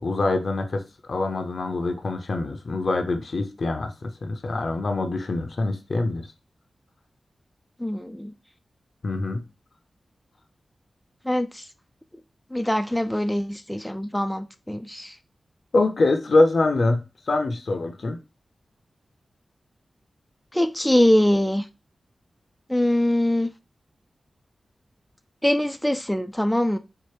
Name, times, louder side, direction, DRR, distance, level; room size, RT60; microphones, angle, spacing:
voice 1, 0.0-6.3 9.0-9.4 15.7-18.2, left 2 dB, 65° left, 0.6 m, -24 dB
voice 2, 7.8-8.3 11.3-11.6 12.5-15.1 20.5-21.6 22.7-23.5 25.4-26.8, left 1 dB, 5° left, 0.3 m, -23 dB
4.4 x 2.0 x 3.2 m
cardioid pair, 45°, 0 cm